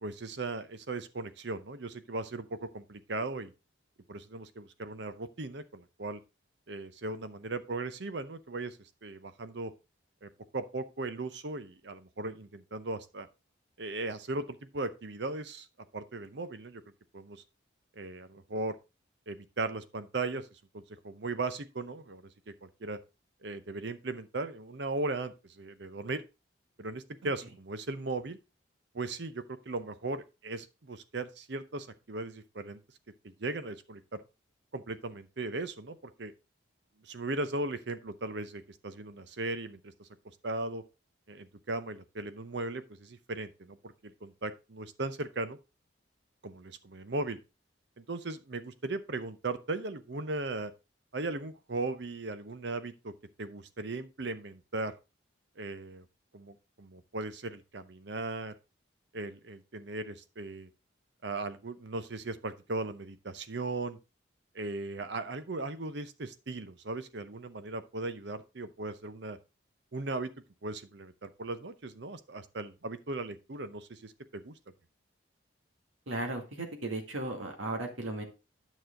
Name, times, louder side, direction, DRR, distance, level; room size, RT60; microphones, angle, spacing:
voice 1, 0.0-3.5 4.1-6.2 6.7-8.8 9.0-9.7 10.2-13.3 13.8-15.7 15.9-16.8 17.1-17.4 18.0-18.8 19.3-20.5 20.7-23.0 23.4-26.2 26.8-28.4 28.9-32.8 33.2-34.2 34.7-36.3 37.0-40.1 40.4-40.8 41.3-45.6 46.4-47.4 48.0-50.7 51.1-53.1 53.4-54.9 55.6-56.0 56.3-58.5 59.1-60.7 61.2-64.0 64.5-69.4 69.9-70.3 70.6-74.5, right 2 dB, 60° right, 0.8 m, -37 dB
voice 2, 76.1-78.2, right 2 dB, 90° right, 2.0 m, -36 dB
9.2 x 6.3 x 3.7 m
head